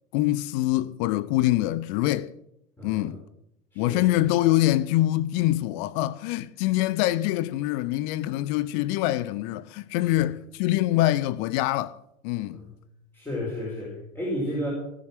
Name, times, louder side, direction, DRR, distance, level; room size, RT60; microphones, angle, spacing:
voice 1, 0.1-2.3 2.8-3.2 3.8-12.0 12.2-12.6, left 15 dB, 35° left, 0.5 m, -24 dB
voice 2, 2.8-3.1 3.7-4.1 10.0-10.1 12.5-12.7 13.1-14.7, left 1 dB, 5° left, 4.8 m, -32 dB
17.5 x 7.5 x 7.6 m
figure-of-eight pair, 85°, 42 cm